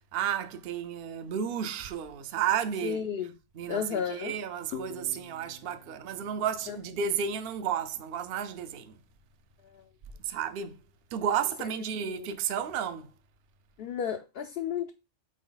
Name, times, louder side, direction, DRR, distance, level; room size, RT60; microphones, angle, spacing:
voice 1, 0.1-3.0 3.6-8.9 10.2-10.8 11.1-13.1, right 8 dB, 55° right, 0.8 m, -32 dB
voice 2, 2.8-3.3 3.7-4.4 6.7-6.8 9.6-9.9 12.1-12.3 13.8-14.9, left 8 dB, 60° left, 0.7 m, -33 dB
sound 1, 4.7-8.1, left 5 dB, 80° left, 1.1 m, -47 dB
6.4 x 4.1 x 3.9 m
omnidirectional pair, 1.3 m